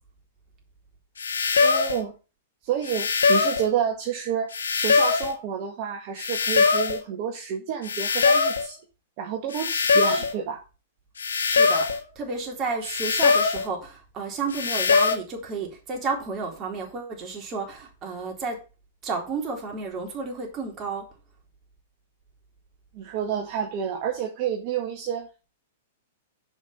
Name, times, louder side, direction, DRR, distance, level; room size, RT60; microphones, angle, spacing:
sound 1, 1.2-2.0 2.9-3.7 4.5-5.3 6.2-7.0 7.9-8.7 9.5-10.3 11.2-12.0 12.8-13.7 14.5-15.2, left 4 dB, 85° left, 1.4 m, -22 dB
voice 1, 1.6-2.1 2.6-8.8 9.2-10.6 22.9-25.3, right 8 dB, 45° right, 1.7 m, -29 dB
voice 2, 11.4-11.9 12.2-18.6 19.0-21.0, right 4 dB, 30° right, 3.7 m, -32 dB
7.2 x 5.6 x 6.9 m
hypercardioid pair, 115°, 0 cm